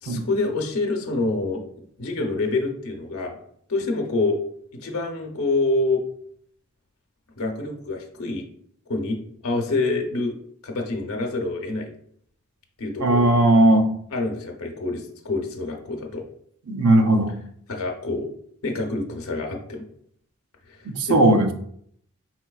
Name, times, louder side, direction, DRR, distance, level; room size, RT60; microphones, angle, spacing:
voice 1, 0.0-1.6 2.0-3.4 3.7-4.4 4.7-6.0 7.4-8.5 8.9-10.4 10.6-11.9 12.8-13.4 14.1-16.3 17.7-18.3 18.6-19.8 20.7-21.4, left 2 dB, 75° left, 2 dB, 0.7 m, -26 dB
voice 2, 13.0-13.9 16.7-17.3 20.8-21.5, right 1 dB, 85° right, 6 dB, 0.6 m, -17 dB
4.7 x 4.3 x 2.3 m, 0.66 s
head